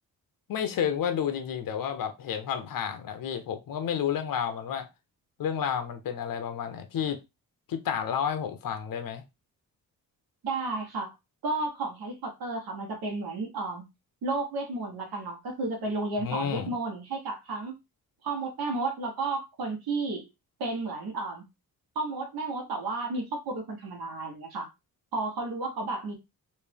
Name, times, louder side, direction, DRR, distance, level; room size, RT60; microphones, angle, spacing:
voice 1, 0.5-4.9 5.4-7.2 7.7-9.2 16.2-16.7, left 8 dB, 65° left, 0.8 m, -31 dB
voice 2, 10.4-11.1 11.4-13.8 14.2-17.7 18.2-20.3 20.6-21.4 21.9-24.7 25.1-26.1, right 3 dB, 90° right, 1.4 m, -32 dB
3.3 x 2.7 x 3.4 m
cardioid pair, 110°, 36 cm